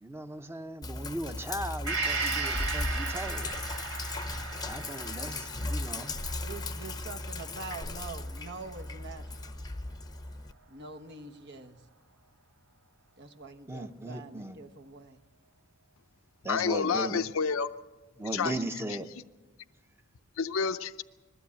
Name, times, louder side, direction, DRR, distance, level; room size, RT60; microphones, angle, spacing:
voice 1, 0.0-3.5 4.6-6.2 13.7-14.6 16.4-17.2 18.2-19.1, right 1 dB, 10° right, 9 dB, 0.8 m, -37 dB
Sink (filling or washing), 0.8-10.5, left 2 dB, 20° left, 0.7 m, -37 dB
Gong, 1.9-9.5 9.9-10.0, right 4 dB, 80° right, 3.5 m, -37 dB
voice 2, 6.4-9.2 10.7-11.8 13.2-15.2, right 3 dB, 55° right, 5 dB, 1.2 m, -44 dB
voice 3, 16.5-17.7 18.3-18.5 20.4-21.0, left 5 dB, 70° left, 10 dB, 0.6 m, -29 dB
21.0 x 16.0 x 8.4 m, 1.3 s
head